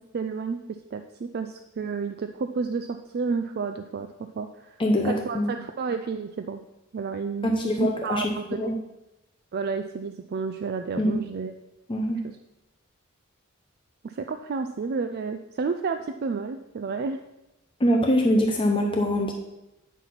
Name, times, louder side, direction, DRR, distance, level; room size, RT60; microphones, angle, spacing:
voice 1, 0.1-0.6 0.9-4.1 4.4-4.8 5.0-6.6 6.9-8.7 9.5-11.5 12.2-12.4 14.0-17.2, right 5 dB, 45° right, 7 dB, 0.4 m, -31 dB
voice 2, 4.8-5.5 7.4-8.8 11.0-11.2 11.9-12.2 17.8-19.3, equal, 25° left, 2 dB, 0.6 m, -24 dB
9.1 x 4.1 x 5.8 m, 0.94 s
head